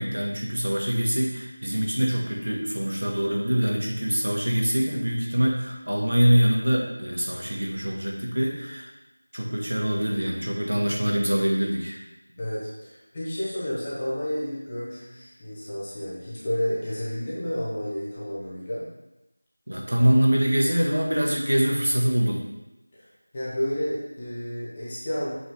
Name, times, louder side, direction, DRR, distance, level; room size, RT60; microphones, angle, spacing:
voice 1, 0.0-8.9 9.3-12.0 19.7-22.4, equal, 75° right, 0 dB, 1.7 m, -24 dB
voice 2, 12.4-18.9 22.9-23.1 23.3-25.3, equal, 10° left, -8 dB, 0.7 m, -31 dB
7.9 x 4.4 x 3.7 m, 0.98 s
figure-of-eight pair, 180°, 0 cm